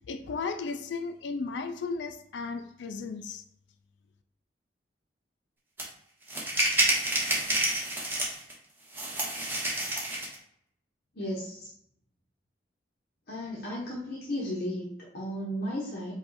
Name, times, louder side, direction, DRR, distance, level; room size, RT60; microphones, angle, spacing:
voice 1, 0.1-3.4, left 4 dB, 80° left, 0.4 m, -35 dB
sound 1, 5.8-5.9 6.3-8.5 8.9-10.3, right 1 dB, 10° right, 1.0 m, -28 dB
voice 2, 11.1-11.7 13.3-16.1, equal, 55° left, 1.0 m, -34 dB
5.1 x 2.3 x 4.1 m
head